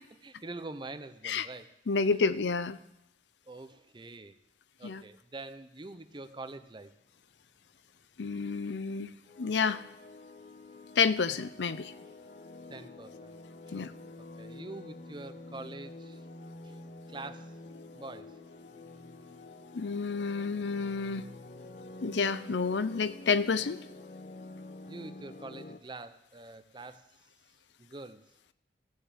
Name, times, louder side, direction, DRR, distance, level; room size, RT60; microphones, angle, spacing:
voice 1, 0.2-2.3 3.5-4.3 4.8-6.9 12.1-12.3 12.7-13.3 13.7-13.9 14.2-16.2 16.6-17.5 17.9-18.4 24.9-27.1 27.8-28.2, right 2 dB, 25° right, 11 dB, 0.6 m, -45 dB
voice 2, 1.9-2.8 4.8-5.0 8.2-9.1 9.4-9.8 11.0-11.9 13.7-13.9 19.7-21.2 22.0-23.8, left 5 dB, 90° left, 15 dB, 0.6 m, -29 dB
sound 1, 6.0-6.3 7.0-7.1 7.6-7.7 8.6-8.8 9.1-25.8, left 2 dB, 45° left, 0.8 m, -48 dB
15.5 x 6.8 x 7.4 m, 0.85 s
head